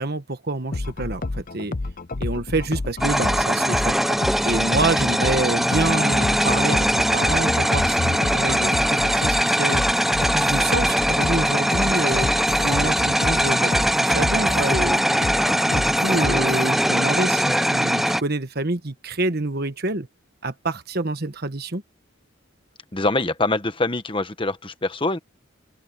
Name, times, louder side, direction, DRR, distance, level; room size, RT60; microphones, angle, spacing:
voice 1, 0.0-1.7 2.2-3.9 4.4-9.8 10.3-12.3 12.6-15.0 15.7-20.1 20.4-21.8, right 2 dB, 50° right, 1.4 m, -27 dB
sound 1, 0.7-16.7, left 2 dB, 40° left, 0.7 m, -30 dB
sound 2, 3.0-18.2, equal, ahead, 0.5 m, -21 dB
voice 2, 22.9-25.2, left 2 dB, 25° left, 1.2 m, -24 dB
open air
head